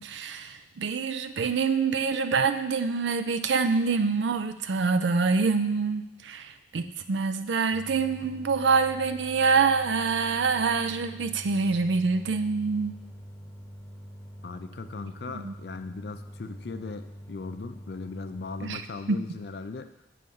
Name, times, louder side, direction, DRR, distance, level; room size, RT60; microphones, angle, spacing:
voice 1, 0.0-13.0 15.4-15.5 18.6-18.8 19.1-19.2, right 4 dB, 90° right, 9 dB, 0.4 m, -26 dB
sound 1, 7.7-18.7, equal, 15° left, 0.6 m, -45 dB
voice 2, 14.4-19.9, left 4 dB, 65° left, 8 dB, 0.5 m, -38 dB
7.6 x 3.4 x 5.4 m, 0.88 s
head